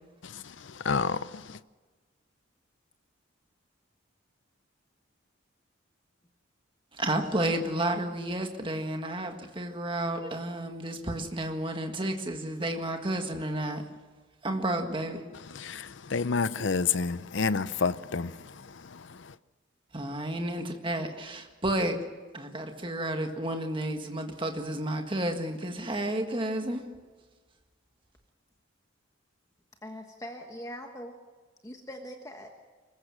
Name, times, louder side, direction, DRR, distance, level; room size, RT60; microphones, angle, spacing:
voice 1, 0.2-1.6 15.5-19.3, left 5 dB, 65° left, 0.7 m, -30 dB
voice 2, 7.0-13.8 14.4-15.2 19.9-22.0 22.3-26.9, right 1 dB, 25° right, 1.7 m, -31 dB
voice 3, 29.8-31.1 31.6-32.5, equal, 15° left, 1.3 m, -42 dB
26.0 x 15.0 x 7.5 m
head